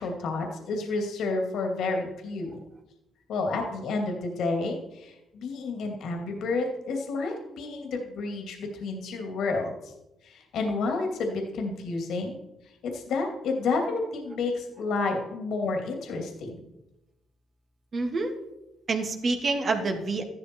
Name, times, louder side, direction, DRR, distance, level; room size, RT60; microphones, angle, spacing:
voice 1, 0.0-2.6 3.3-9.9 10.2-12.4 12.8-16.6, left 3 dB, 75° left, 3 dB, 2.6 m, -30 dB
voice 2, 17.9-18.3 18.9-20.2, right 3 dB, 45° right, 3 dB, 2.5 m, -27 dB
13.5 x 12.0 x 4.6 m, 0.94 s
cardioid pair, 90°, 0 cm